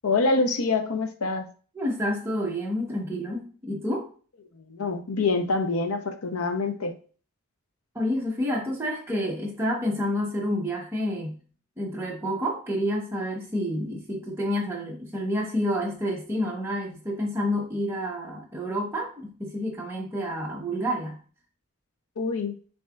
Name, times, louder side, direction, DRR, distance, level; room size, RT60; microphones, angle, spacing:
voice 1, 0.0-1.5 4.6-6.9 22.2-22.6, left 3 dB, 75° left, 6 dB, 0.6 m, -26 dB
voice 2, 1.7-4.1 7.9-11.4 11.8-21.2, equal, 10° right, -3 dB, 0.9 m, -29 dB
7.3 x 2.8 x 2.3 m, 0.40 s
head